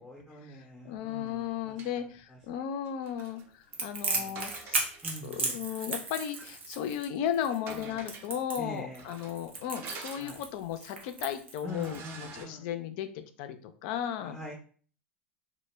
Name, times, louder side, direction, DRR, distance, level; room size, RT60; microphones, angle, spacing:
voice 1, 0.0-2.4 4.1-4.4 5.0-5.6 7.7-8.0 8.6-9.0 10.2-10.4 11.6-12.7 14.2-14.5, equal, 5° left, -2 dB, 0.6 m, -44 dB
voice 2, 0.8-4.9 5.2-14.4, left 9 dB, 55° left, 9 dB, 0.3 m, -35 dB
sound 1, 1.2-2.0 2.8-5.2 5.5-5.6 6.2-6.7 7.0-7.1 7.4-8.4 8.9-10.7 11.2-11.3 11.6-12.5, right 4 dB, 45° right, 0.6 m, -48 dB
Crackle, 3.7-12.0, right 3 dB, 85° right, 0.6 m, -35 dB
2.0 x 2.0 x 3.2 m, 0.42 s
hypercardioid pair, 85°, 6 cm